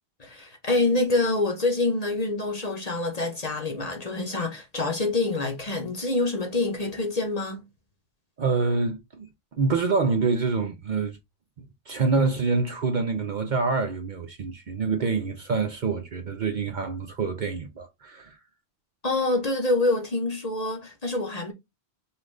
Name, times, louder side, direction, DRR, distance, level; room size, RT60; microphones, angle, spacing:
voice 1, 0.2-7.6 19.0-21.5, left 2 dB, 40° left, 0.9 m, -26 dB
voice 2, 8.4-9.3 9.5-11.2 11.9-18.4, right 4 dB, 50° right, 0.7 m, -26 dB
5.6 x 2.5 x 3.2 m
omnidirectional pair, 1.2 m